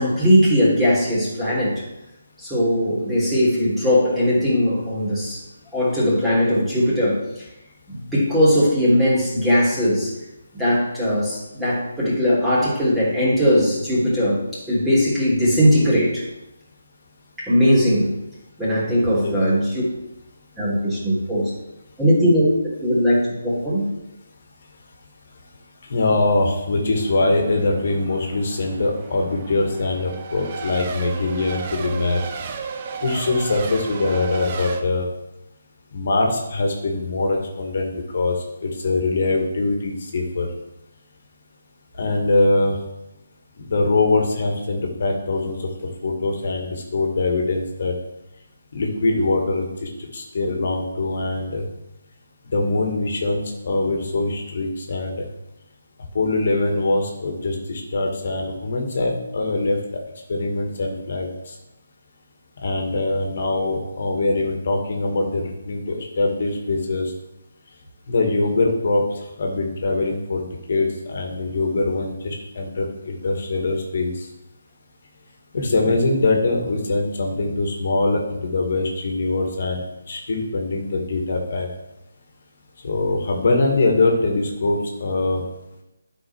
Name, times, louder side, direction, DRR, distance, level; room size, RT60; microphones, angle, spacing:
voice 1, 0.0-1.8 2.4-5.4 5.7-7.4 7.9-10.1 10.5-16.2 17.4-18.1 18.6-19.8 20.6-21.5 22.0-22.5 22.8-23.8 75.5-75.7, equal, 5° right, -9 dB, 3.3 m, -19 dB
voice 2, 19.0-19.3 25.9-32.2 33.0-35.1 35.9-38.4 38.6-40.5 41.9-42.8 43.6-45.6 46.0-47.9 48.7-51.7 52.5-55.3 56.1-59.8 60.3-61.5 62.6-67.1 68.1-69.0 69.4-74.3 75.5-81.7 82.8-85.4, left 2 dB, 50° left, 2 dB, 2.0 m, -23 dB
Race car auto racing / Accelerating revving vroom / Mechanisms, 27.0-34.8, right 5 dB, 30° right, 0.9 m, -34 dB
12.0 x 5.6 x 4.7 m, 0.93 s
figure-of-eight pair, 145°, 0 cm